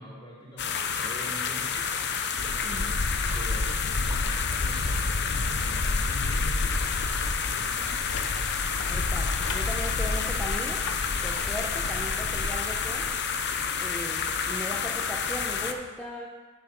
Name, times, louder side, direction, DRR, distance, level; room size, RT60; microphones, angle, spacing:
voice 1, 0.0-2.1 2.3-2.9 3.2-8.2, equal, 20° left, -7 dB, 3.4 m, -46 dB
sound 1, 0.6-15.7, left 6 dB, 50° left, 0.7 m, -30 dB
sound 2, 2.4-13.2, left 2 dB, 85° left, 0.8 m, -31 dB
voice 2, 2.6-3.0 8.9-10.8 11.2-13.1 13.8-16.3, left 1 dB, 5° left, -3 dB, 0.7 m, -38 dB
8.7 x 7.7 x 5.9 m, 1.3 s
head